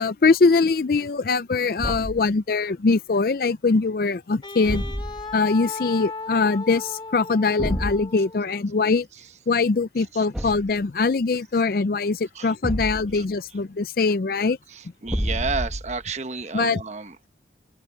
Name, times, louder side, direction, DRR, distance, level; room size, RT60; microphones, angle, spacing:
voice 1, 0.0-4.8 5.3-9.1 9.5-14.6 16.5-16.8, left 4 dB, 55° left, 0.5 m, -22 dB
Thump thud, 1.8-2.3 4.6-5.4 7.6-8.0 10.3-10.8 12.6-13.3 15.1-16.0, equal, 5° right, 1.1 m, -29 dB
Wind instrument woodwind instrument, 4.4-8.5, left 3 dB, 30° left, 2.2 m, -36 dB
voice 2, 10.1-10.5 12.3-12.5 13.1-13.2 14.7-17.2, right 4 dB, 40° right, 1.1 m, -31 dB
open air
head